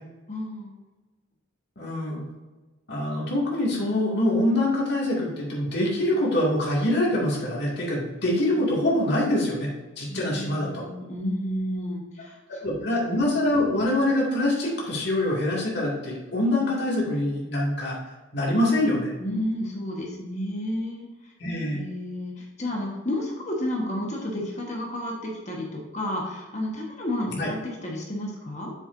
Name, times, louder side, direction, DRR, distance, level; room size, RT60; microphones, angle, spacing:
voice 1, 0.3-0.7 10.1-12.4 12.7-12.9 19.2-21.3 21.7-28.7, left 1 dB, 35° left, -1 dB, 1.4 m, -31 dB
voice 2, 1.8-2.2 2.9-10.8 12.6-18.0 18.3-19.1 21.4-21.8 27.3-27.5, left 1 dB, 50° left, -4 dB, 2.3 m, -24 dB
7.7 x 7.3 x 2.7 m, 1.2 s
head